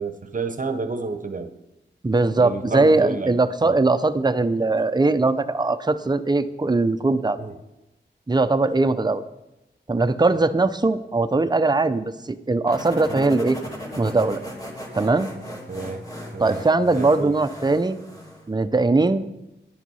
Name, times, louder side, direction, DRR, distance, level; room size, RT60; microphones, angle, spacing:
voice 1, 0.0-1.5 2.4-3.3 3.6-3.8 7.4-7.6 13.1-13.3 15.7-16.0 16.3-17.3, right 4 dB, 45° right, 9 dB, 0.9 m, -30 dB
voice 2, 2.0-7.4 8.3-9.2 9.9-13.6 14.0-14.4 15.0-15.3 16.4-18.0 18.5-19.3, right 3 dB, 20° right, 11 dB, 0.6 m, -20 dB
sound 1, 12.7-18.5, equal, 20° left, 2.3 m, -37 dB
10.5 x 9.1 x 5.5 m, 0.93 s
wide cardioid pair, 90°, 19 cm